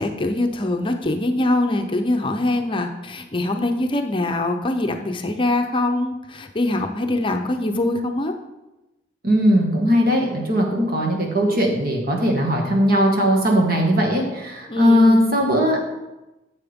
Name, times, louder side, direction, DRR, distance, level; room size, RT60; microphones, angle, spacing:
voice 1, 0.0-8.3 14.7-15.3, left 2 dB, 30° left, 5 dB, 0.7 m, -23 dB
voice 2, 9.2-15.8, equal, 55° right, 1 dB, 1.8 m, -19 dB
10.5 x 7.6 x 3.6 m, 1.0 s
head